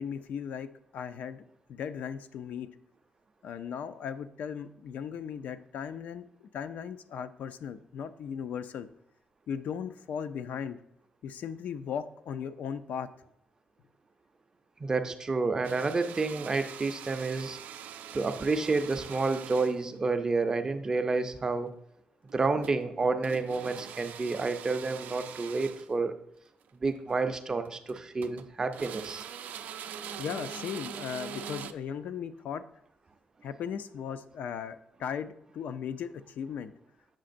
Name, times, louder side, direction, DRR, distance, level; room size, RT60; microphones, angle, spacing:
voice 1, 0.0-1.4 1.7-2.7 3.4-8.9 9.5-10.8 11.2-13.1 30.2-32.6 33.4-36.7, left 7 dB, 70° left, 12 dB, 0.3 m, -37 dB
voice 2, 14.8-17.6 18.1-21.7 22.3-26.1 26.8-29.2, right 3 dB, 25° right, 8 dB, 0.4 m, -29 dB
sound 1, 15.6-20.0 22.3-22.8 23.2-25.9 27.0-27.1 27.6-28.5 28.7-31.7, right 8 dB, 90° right, 0.3 m, -43 dB
7.4 x 5.8 x 2.5 m, 0.75 s
cardioid pair, 155°, 3 cm